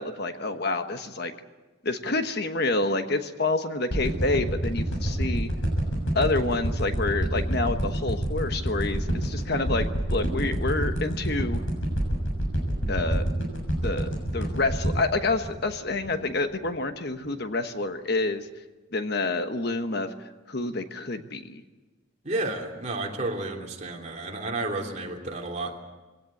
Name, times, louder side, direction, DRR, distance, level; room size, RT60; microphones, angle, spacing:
voice 1, 0.0-1.3 1.8-5.5 6.1-11.7 12.9-13.2 13.8-18.5 18.9-20.1 20.5-21.6, left 2 dB, 50° left, 8 dB, 1.2 m, -28 dB
sound 1, 3.9-16.2 16.6-16.7, right 1 dB, 65° left, 6.8 m, -27 dB
voice 2, 22.2-25.8, right 2 dB, 35° right, 1 dB, 3.0 m, -31 dB
22.5 x 17.0 x 8.5 m, 1.2 s
head